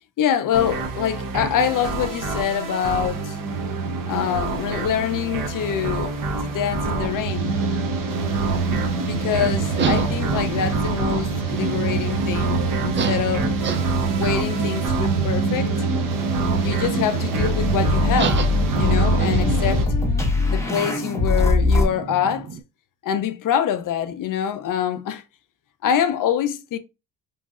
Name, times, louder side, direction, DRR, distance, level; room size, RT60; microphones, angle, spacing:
voice 1, 0.2-3.4 4.1-7.6 9.0-13.5 14.2-15.7 16.6-18.4 18.7-19.9 20.5-22.5 23.0-25.2 25.8-26.8, left 9 dB, 55° left, 0.5 m, -25 dB
sound 1, 0.5-19.9, right 4 dB, 55° right, 0.8 m, -25 dB
sound 2, 7.4-9.0 9.3-10.7 11.4-21.9, left 3 dB, 5° left, 0.7 m, -26 dB
sound 3, 8.4-22.6, right 5 dB, 30° right, 0.4 m, -32 dB
3.1 x 2.6 x 2.3 m
cardioid pair, 85°, 40 cm